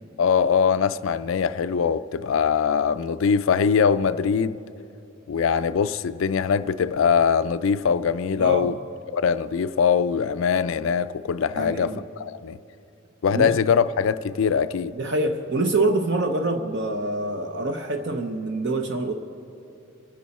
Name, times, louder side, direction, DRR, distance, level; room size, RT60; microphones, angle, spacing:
voice 1, 0.2-4.6 5.3-8.8 9.1-12.6 13.2-14.9, left 6 dB, 70° left, 0.4 m, -22 dB
voice 2, 8.4-8.7 11.6-12.0 13.3-13.5 14.9-19.1, right 2 dB, 55° right, 0.8 m, -25 dB
28.0 x 10.0 x 4.2 m
head